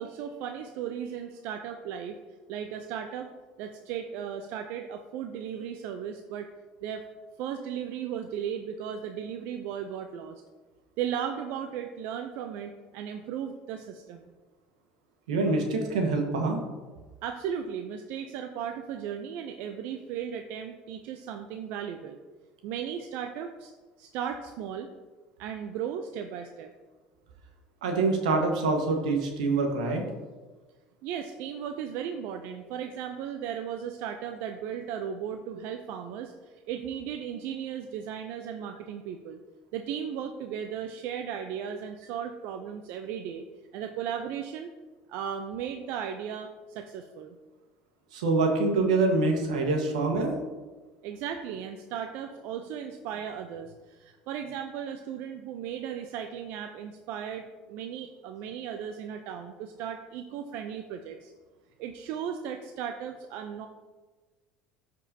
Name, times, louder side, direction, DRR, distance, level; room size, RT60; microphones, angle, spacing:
voice 1, 0.0-2.2 2.5-3.3 3.6-6.5 6.8-7.0 7.4-10.4 11.0-14.3 17.2-22.2 22.6-23.7 24.0-24.9 25.4-26.7 31.0-39.4 39.7-43.4 43.7-44.7 45.1-47.4 51.0-61.3 61.8-63.7, right 8 dB, 70° right, 6 dB, 0.6 m, -36 dB
voice 2, 15.3-16.6 27.8-30.0 48.1-50.3, right 3 dB, 90° right, 3 dB, 1.4 m, -25 dB
13.0 x 5.3 x 2.8 m, 1.3 s
hypercardioid pair, 80°, 4 cm